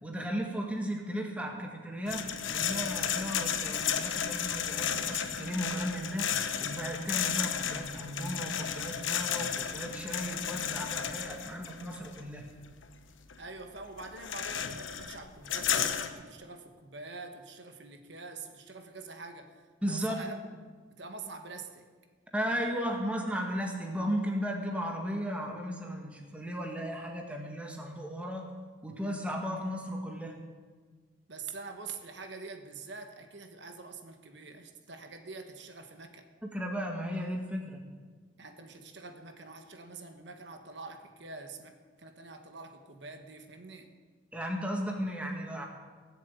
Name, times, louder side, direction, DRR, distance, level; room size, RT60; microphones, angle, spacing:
voice 1, 0.0-6.3 6.6-12.4 19.8-20.2 22.3-28.5 28.8-30.4 36.5-37.8 44.3-45.7, equal, 5° right, 1 dB, 1.7 m, -35 dB
sound 1, 2.1-12.2 12.8-12.9 13.3-13.5 13.8-16.1, left 8 dB, 90° left, 1.1 m, -33 dB
voice 2, 13.4-20.4 20.9-21.9 31.3-36.3 38.4-43.9, right 4 dB, 65° right, 6 dB, 1.3 m, -45 dB
17.0 x 7.5 x 8.4 m, 1.5 s
head